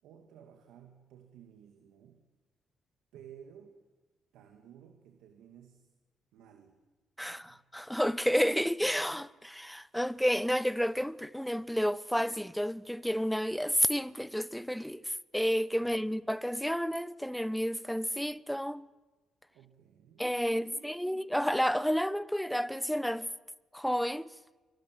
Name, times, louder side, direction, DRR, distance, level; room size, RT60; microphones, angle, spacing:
voice 1, 0.0-2.3 3.1-3.7 4.3-5.9 6.3-6.8 7.2-7.7 15.8-16.2 19.5-21.3, right 9 dB, 90° right, 2.4 m, -55 dB
voice 2, 7.2-18.9 20.2-23.3 23.7-24.3, equal, ahead, 0.8 m, -31 dB
26.0 x 23.0 x 7.8 m
cardioid pair, 90°, 0 cm